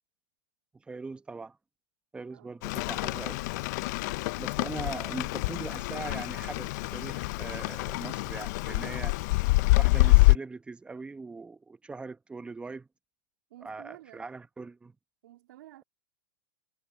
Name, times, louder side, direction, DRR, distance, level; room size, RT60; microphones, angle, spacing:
voice 1, 0.7-1.6 2.1-3.4 4.4-9.1 9.8-12.9 13.6-14.9, right 3 dB, 10° right, 0.9 m, -41 dB
voice 2, 2.3-2.6 4.0-4.2 8.6-9.3 13.5-14.2 15.2-15.8, right 15 dB, 70° right, 3.4 m, -52 dB
Rain, 2.6-10.4, left 22 dB, 55° left, 0.5 m, -26 dB
hypercardioid pair, 125°, 11 cm